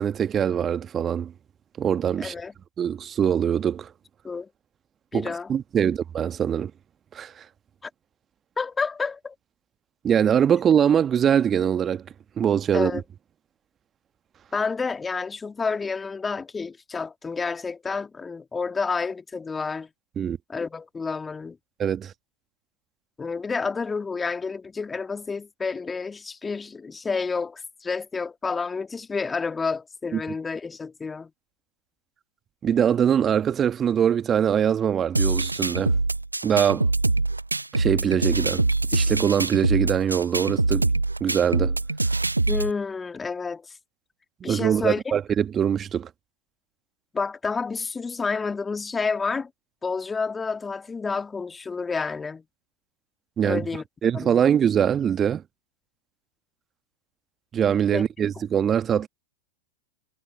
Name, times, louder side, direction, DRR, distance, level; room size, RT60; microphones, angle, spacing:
voice 1, 0.0-1.3 1.8-2.3 2.8-3.9 5.1-6.7 7.1-7.4 10.0-12.0 12.4-13.0 20.2-20.4 21.8-22.1 30.1-30.2 32.6-36.0 36.4-36.9 37.7-38.6 38.9-40.9 41.2-41.8 44.4-46.1 53.4-53.6 54.0-55.4 57.5-59.1, right 8 dB, 25° right, 1.4 m, -23 dB
voice 2, 2.2-2.5 4.2-4.5 5.1-5.5 7.8-7.9 8.6-9.3 12.7-13.0 14.5-19.9 20.5-21.6 23.2-31.3 42.5-43.7 44.4-45.0 47.1-49.5 49.8-52.4 53.4-53.8 54.1-54.4 57.9-58.0, left 4 dB, 15° left, 2.1 m, -29 dB
sound 1, 35.2-42.7, right 2 dB, 90° right, 0.8 m, -24 dB
figure-of-eight pair, 90°, 0 cm